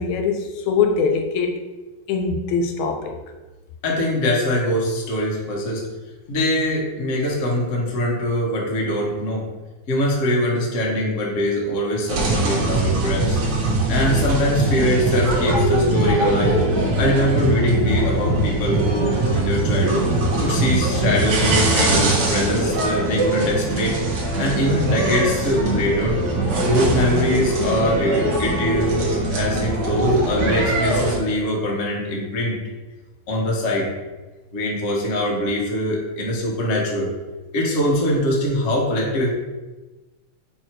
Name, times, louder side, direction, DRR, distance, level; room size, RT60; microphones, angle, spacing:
voice 1, 0.0-1.6 2.1-3.2, left 5 dB, 80° left, 5 dB, 1.9 m, -22 dB
voice 2, 3.8-5.8 6.3-9.4 9.9-13.4 13.9-16.6 17.0-20.1 20.4-26.2 26.6-32.6 33.3-33.9 34.5-37.1 37.5-39.3, left 1 dB, 60° left, -2 dB, 0.8 m, -22 dB
sound 1, 12.1-31.2, right 2 dB, 65° right, 1.1 m, -21 dB
4.7 x 4.4 x 4.5 m, 1.2 s
omnidirectional pair, 3.4 m